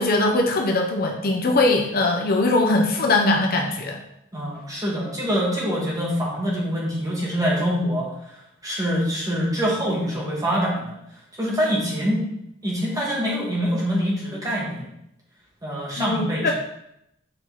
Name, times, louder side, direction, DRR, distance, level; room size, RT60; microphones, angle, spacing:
voice 1, 0.0-4.0 16.0-16.5, left 2 dB, 45° left, 2 dB, 0.9 m, -21 dB
voice 2, 4.3-11.0 11.4-12.2 12.6-14.9 15.6-16.5, equal, 20° right, -5 dB, 2.4 m, -25 dB
7.8 x 4.7 x 4.2 m, 0.79 s
head